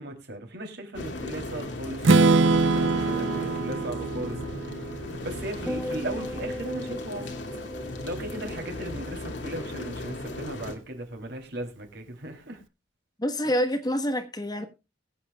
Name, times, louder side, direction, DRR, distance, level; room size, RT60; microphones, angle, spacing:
voice 1, 0.0-4.4 5.2-7.4 8.0-12.6, right 1 dB, 60° right, 3.2 m, -37 dB
sound 1, 0.9-10.8, left 1 dB, 65° left, 2.2 m, -36 dB
Strum, 2.0-6.0, right 3 dB, 80° right, 0.7 m, -24 dB
sound 2, 5.7-10.0 10.3-10.8, left 1 dB, 5° left, 0.7 m, -38 dB
voice 2, 13.2-14.7, equal, 20° left, 1.3 m, -27 dB
22.0 x 8.3 x 2.3 m
head